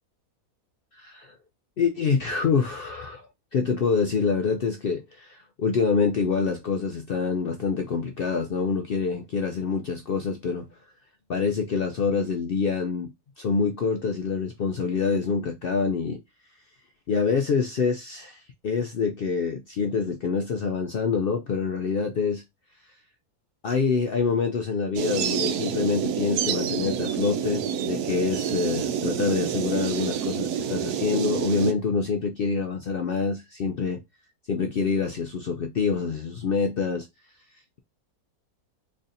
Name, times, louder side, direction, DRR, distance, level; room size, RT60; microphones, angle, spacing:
voice 1, 0.9-1.4 1.8-10.7 11.3-13.1 13.4-16.2 17.1-22.4 23.6-34.0 34.5-37.1, left 5 dB, 75° left, 0.5 m, -26 dB
sound 1, 25.0-31.7, right 8 dB, 85° right, 1.1 m, -28 dB
4.0 x 3.2 x 2.5 m
omnidirectional pair, 1.6 m